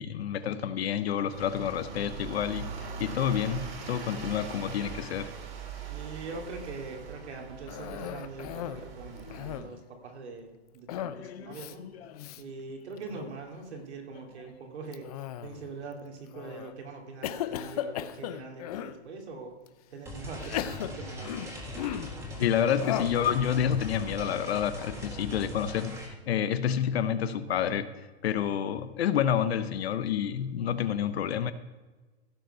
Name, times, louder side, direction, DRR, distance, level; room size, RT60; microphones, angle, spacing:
voice 1, 0.0-2.7 3.0-5.3 9.3-9.4 11.1-12.3 22.4-27.9 28.2-31.5, left 9 dB, 65° left, 0.9 m, -29 dB
sound 1, 1.3-9.6, right 5 dB, 60° right, 2.8 m, -41 dB
voice 2, 5.9-10.5 10.7-11.9 12.4-19.6 19.9-21.5, right 4 dB, 80° right, 2.7 m, -43 dB
Cough, 7.7-8.9 9.2-9.8 10.9-11.2 11.5-11.7 12.2-12.4 13.0-13.4 14.9-15.7 16.3-16.7 17.2-19.0 19.7-19.8 20.4-22.2 22.8-23.2, left 11 dB, 35° left, 0.5 m, -36 dB
sound 2, 20.1-26.1, equal, 10° right, 1.8 m, -40 dB
16.0 x 5.3 x 5.5 m
hypercardioid pair, 150°, 33 cm